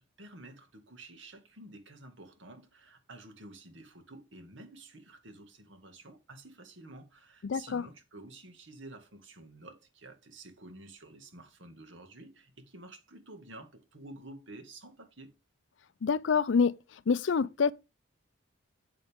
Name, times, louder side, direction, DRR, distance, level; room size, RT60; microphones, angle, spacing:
voice 1, 0.0-15.3, right 2 dB, 65° right, 2.0 m, -50 dB
voice 2, 7.4-7.8 16.0-16.7 17.1-17.7, left 5 dB, 65° left, 0.4 m, -26 dB
7.9 x 7.8 x 3.6 m
head